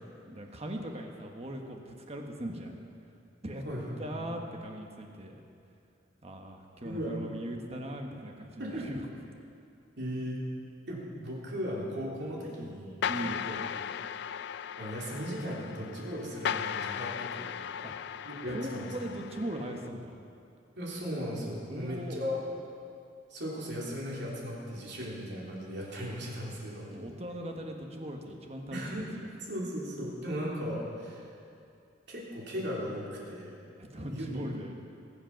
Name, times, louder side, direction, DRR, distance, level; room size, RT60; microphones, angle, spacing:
voice 1, 0.2-2.8 3.4-3.6 4.0-5.4 6.2-9.1 13.1-13.4 17.8-17.9 18.5-20.2 21.7-22.2 26.9-28.8 29.2-29.3 33.8-34.7, right 1 dB, 35° right, 2 dB, 1.2 m, -39 dB
voice 2, 6.8-7.1 8.6-8.9 10.0-10.4 10.9-13.6 14.8-17.5 18.2-18.9 20.8-22.3 23.3-26.9 28.7-29.1 29.5-31.2 32.1-33.5 34.0-34.4, equal, 65° right, -4 dB, 3.3 m, -37 dB
sound 1, 13.0-19.9, left 8 dB, 65° left, 0.4 m, -37 dB
20.5 x 7.8 x 5.9 m, 2.5 s
head